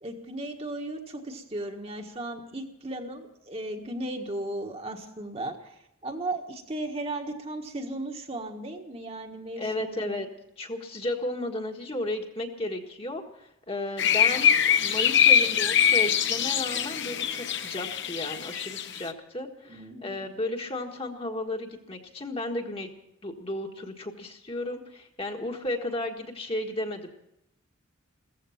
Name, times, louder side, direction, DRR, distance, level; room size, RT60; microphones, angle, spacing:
voice 1, 0.0-5.7 6.0-10.1 19.7-20.3, right 1 dB, 30° right, 3 dB, 1.5 m, -36 dB
voice 2, 9.6-10.3 10.6-22.9 23.2-27.1, left 1 dB, 25° left, 2 dB, 1.6 m, -34 dB
sound 1, 14.0-19.1, left 8 dB, 55° left, 1.1 m, -23 dB
16.0 x 15.0 x 5.8 m, 0.81 s
head